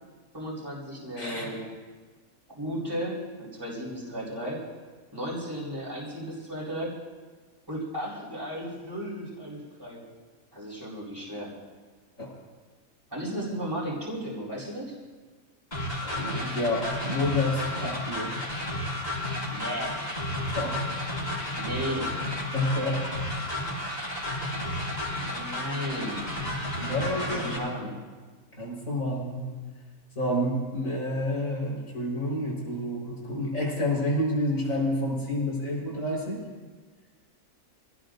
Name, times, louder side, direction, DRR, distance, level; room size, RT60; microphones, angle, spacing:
voice 1, 0.3-1.6 2.5-4.6 5.1-6.9 7.7-10.0 10.5-11.5 13.1-14.9 19.5-20.0 21.6-22.1 25.1-26.3 27.2-28.0, equal, 15° right, -5 dB, 4.5 m, -34 dB
voice 2, 1.2-1.5 12.2-12.3 16.0-18.6 20.5-20.8 22.5-23.0 26.8-27.7 28.5-29.5 30.2-36.4, left 1 dB, 65° left, -4 dB, 5.0 m, -29 dB
sound 1, 15.7-27.6, left 1 dB, 30° left, 5.5 m, -32 dB
26.5 x 17.5 x 2.6 m, 1.4 s
omnidirectional pair, 1.5 m